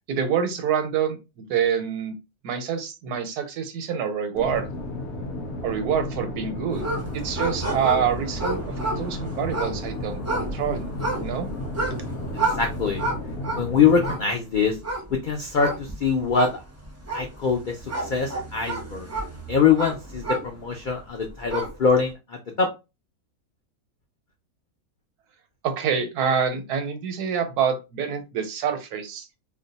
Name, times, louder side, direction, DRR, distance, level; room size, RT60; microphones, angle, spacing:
voice 1, 0.1-2.1 2.4-4.7 5.6-6.9 7.1-10.9 11.2-11.5 25.6-29.3, right 7 dB, 80° right, 8 dB, 1.2 m, -26 dB
sound 1, 4.3-14.1, left 1 dB, 60° left, 0.7 m, -33 dB
sound 2, 6.7-20.9 21.3-21.9, right 2 dB, 20° right, 0.4 m, -31 dB
voice 2, 12.5-13.0 13.5-14.8 15.2-16.5 17.1-17.8 18.0-19.1 19.5-22.7, left 6 dB, 90° left, 2 dB, 0.4 m, -23 dB
2.7 x 2.1 x 3.9 m, 0.26 s
omnidirectional pair, 1.6 m